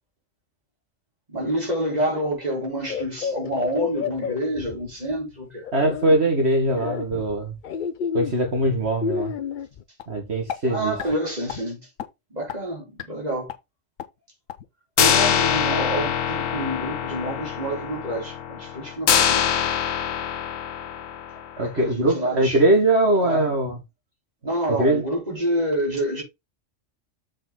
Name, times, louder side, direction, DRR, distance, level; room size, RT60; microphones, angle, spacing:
voice 1, 1.3-5.6 10.6-11.9 12.3-13.5 15.0-19.5 21.6-22.6 23.2-23.5 24.4-26.2, right 1 dB, 30° right, 4.0 m, -28 dB
sound 1, 2.8-5.1 5.6-6.2 6.7-9.8, left 7 dB, 50° left, 0.6 m, -30 dB
voice 2, 5.7-7.5 8.1-9.3 10.1-10.9 21.6-23.8 24.7-25.0, right 1 dB, 55° right, 2.1 m, -21 dB
sound 2, 10.0-10.1 10.5-10.6 11.0-11.2 11.5-11.6 12.0-12.1 12.5-12.6 13.0-13.1 13.5-13.6 14.0-14.1 14.5-14.6 15.0-21.7, left 8 dB, 85° left, 1.3 m, -24 dB
7.2 x 5.3 x 3.9 m
omnidirectional pair, 1.3 m